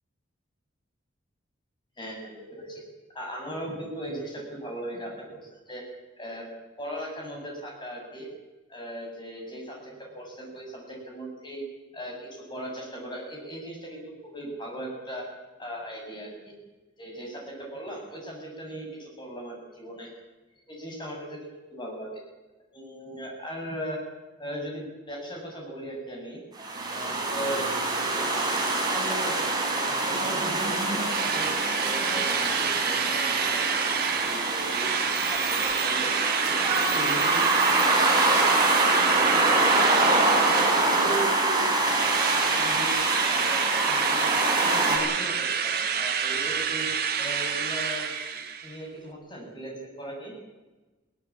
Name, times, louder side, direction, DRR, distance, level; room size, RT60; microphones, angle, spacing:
voice 1, 2.0-2.8 3.1-5.4 5.7-5.8 6.2-6.5 6.8-8.3 8.7-11.6 11.9-15.3 15.6-16.5 17.0-20.1 20.7-22.2 22.7-24.0 24.4-26.4 26.9-27.7 28.1-29.4 29.8-31.5 31.8-32.3 32.6-34.9 35.2-36.1 36.4-38.4 38.8-39.9 40.4-42.9 43.3-46.9 47.2-50.3, right 1 dB, 25° left, -1 dB, 7.9 m, -38 dB
sound 1, 26.6-45.0, right 2 dB, 20° right, 6.0 m, -25 dB
Drill, 31.1-41.5 41.9-48.8, right 7 dB, 55° right, 2.3 m, -28 dB
20.5 x 18.5 x 8.7 m, 1.2 s
head